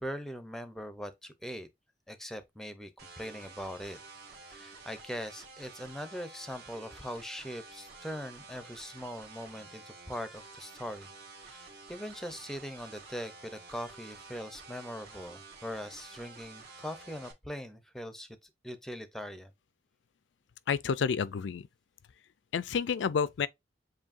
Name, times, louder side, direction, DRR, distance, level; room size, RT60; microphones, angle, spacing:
voice 1, 0.0-1.7 2.1-2.9 3.2-4.0 4.5-11.1 11.4-18.3 18.6-19.5, equal, ahead, 0.6 m, -41 dB
sound 1, 3.0-17.3, right 3 dB, 55° right, 1.8 m, -51 dB
voice 2, 20.7-21.7 22.5-23.5, left 6 dB, 85° left, 0.4 m, -29 dB
7.4 x 2.7 x 2.5 m
head